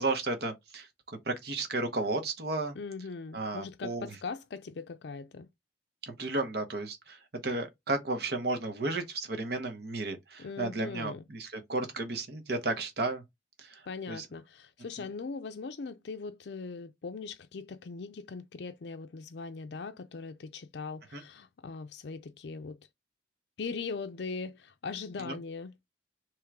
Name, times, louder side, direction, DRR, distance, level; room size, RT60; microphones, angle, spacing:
voice 1, 0.0-2.8 3.3-4.1 6.0-13.2 13.6-14.3 15.0-15.1 21.1-21.2 25.2-25.3, right 2 dB, 55° right, 1.0 m, -33 dB
voice 2, 2.8-5.5 10.4-11.2 13.9-22.8 23.6-25.7, left 4 dB, 65° left, 0.4 m, -40 dB
3.6 x 3.1 x 4.6 m
head